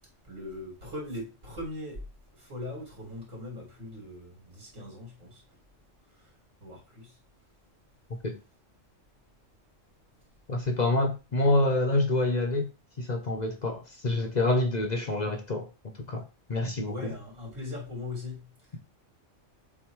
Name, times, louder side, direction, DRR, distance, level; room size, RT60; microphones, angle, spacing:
voice 1, 0.3-2.0 2.5-5.4 6.6-7.1 16.9-18.4, left 2 dB, 80° right, 3.0 m, -39 dB
voice 2, 10.5-12.7 13.0-15.7 16.1-16.2 16.5-17.1, left 2 dB, 40° left, 0.9 m, -27 dB
7.3 x 2.9 x 4.7 m
omnidirectional pair, 1.3 m